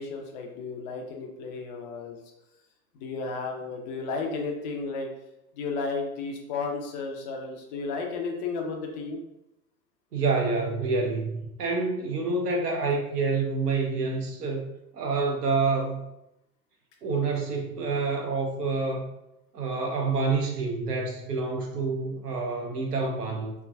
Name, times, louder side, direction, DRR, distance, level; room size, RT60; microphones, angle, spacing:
voice 1, 0.0-2.2 2.9-5.1 5.6-9.2, left 4 dB, 30° left, 2 dB, 0.4 m, -33 dB
voice 2, 10.1-14.7 14.9-16.0 17.0-19.1 19.5-23.5, right 3 dB, 80° right, 1 dB, 0.8 m, -27 dB
3.3 x 2.1 x 2.3 m, 0.87 s
figure-of-eight pair, 105°, 47 cm